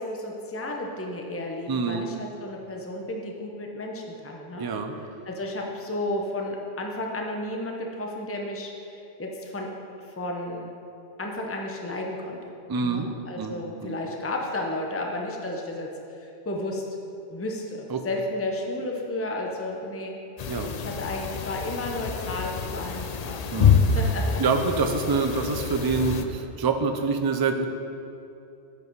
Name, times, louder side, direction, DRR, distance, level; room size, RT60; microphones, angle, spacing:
voice 1, 0.0-4.6 5.2-9.7 10.2-10.7 11.2-12.5 12.8-16.8 17.3-20.2 20.8-24.4, left 1 dB, 15° left, 0 dB, 0.8 m, -33 dB
voice 2, 1.7-2.1 4.5-4.9 12.7-13.1 13.4-13.5 13.8-13.9 17.9-18.0 20.5-20.8 23.5-24.0 24.4-27.7, right 4 dB, 35° right, 5 dB, 0.4 m, -26 dB
sound 1, 20.4-26.3, left 6 dB, 55° left, 0.4 m, -26 dB
8.1 x 8.0 x 4.6 m, 2.7 s
omnidirectional pair, 1.1 m